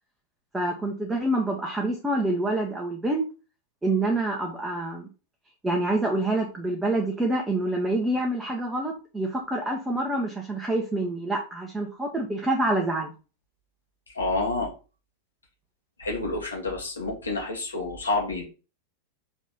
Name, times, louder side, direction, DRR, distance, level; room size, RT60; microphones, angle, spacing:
voice 1, 0.5-3.3 3.8-5.1 5.6-13.1, right 2 dB, 10° right, 0 dB, 1.2 m, -27 dB
voice 2, 14.1-14.7 16.0-18.5, left 2 dB, 75° left, -1 dB, 2.5 m, -28 dB
6.1 x 4.2 x 3.9 m, 0.32 s
figure-of-eight pair, 90°, 0 cm